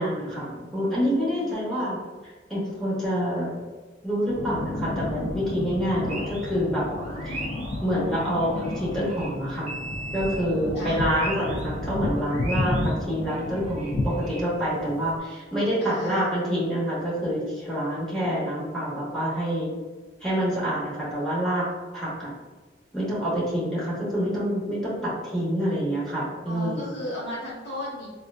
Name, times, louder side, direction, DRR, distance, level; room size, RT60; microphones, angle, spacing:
voice 1, 0.0-2.0 2.5-3.5 4.0-6.8 7.2-7.4 7.8-9.7 10.1-19.7 20.2-21.7 21.9-22.3 22.9-26.9, equal, ahead, -9 dB, 1.0 m, -27 dB
voice 2, 1.4-1.9 10.7-11.0 15.8-16.3 26.5-28.1, left 1 dB, 70° left, -7 dB, 1.3 m, -35 dB
sound 1, 4.2-15.2, left 1 dB, 50° left, 0.4 m, -32 dB
sound 2, 6.1-6.5 6.8-11.7 11.9-14.5, right 1 dB, 40° right, 0.6 m, -39 dB
3.6 x 2.5 x 2.2 m, 1.3 s
head